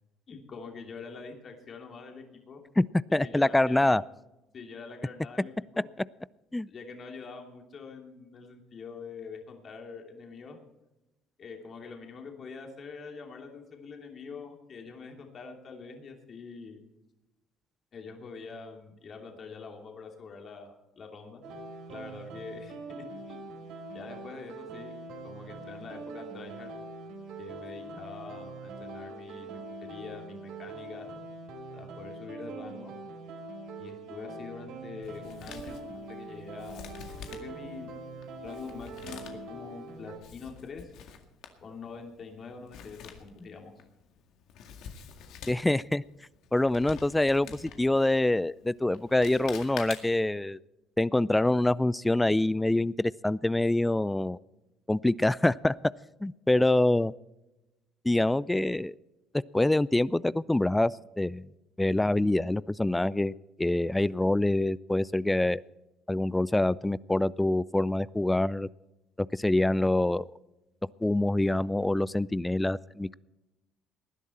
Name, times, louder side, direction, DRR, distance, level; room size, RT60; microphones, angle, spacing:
voice 1, 0.3-2.6 3.1-4.1 4.5-5.9 6.7-10.6 11.4-16.8 17.9-21.4 21.9-23.4 23.9-24.9 25.2-26.7 27.4-31.1 31.7-32.9 33.8-36.9 37.3-37.9 38.3-39.2 39.5-40.9 41.6-43.7, left 4 dB, 50° left, 2 dB, 2.8 m, -45 dB
voice 2, 3.1-4.0 6.5-6.7 45.5-46.0 46.5-50.6 51.0-54.4 54.9-55.7 56.2-57.1 58.0-58.9 59.5-61.4 61.8-65.6 66.1-68.7 69.3-70.3 71.0-73.1, left 1 dB, 10° left, 21 dB, 0.4 m, -25 dB
sound 1, 21.4-40.2, right 2 dB, 75° right, 3.7 m, -43 dB
Male speech man speaking, 35.0-50.3, left 7 dB, 70° left, 2.0 m, -48 dB
19.5 x 11.0 x 4.3 m, 0.99 s
supercardioid pair, 70°, 0 cm